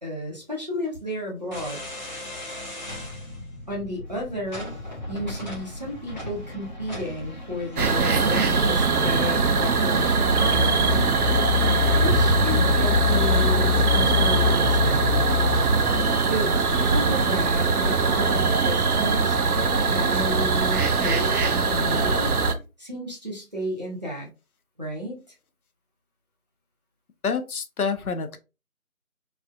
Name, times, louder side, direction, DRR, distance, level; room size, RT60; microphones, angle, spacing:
voice 1, 0.0-1.8 3.7-4.7 5.1-11.2 12.0-15.0 16.2-19.4 19.9-22.3 22.8-24.3 24.8-25.2, equal, 30° right, -3 dB, 0.8 m, -32 dB
sound 1, 1.5-21.2, left 1 dB, 30° left, 0.8 m, -38 dB
sound 2, 7.8-22.5, right 2 dB, 90° right, 0.7 m, -21 dB
voice 2, 27.2-28.4, left 5 dB, 85° left, 8 dB, 0.7 m, -28 dB
3.1 x 2.5 x 2.3 m, 0.29 s
figure-of-eight pair, 165°, 43 cm